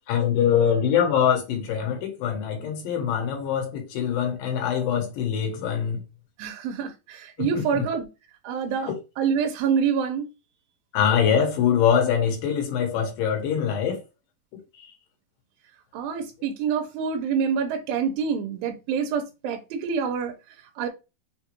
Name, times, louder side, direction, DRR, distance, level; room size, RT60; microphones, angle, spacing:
voice 1, 0.1-6.0 7.4-7.9 8.9-9.0 10.9-14.0 14.8-14.9, left 8 dB, 75° left, 2.6 m, -23 dB
voice 2, 6.4-8.1 8.4-8.9 9.2-10.3 15.9-20.3 20.8-20.9, right 6 dB, 85° right, 2.4 m, -26 dB
6.0 x 2.3 x 3.0 m
omnidirectional pair, 4.2 m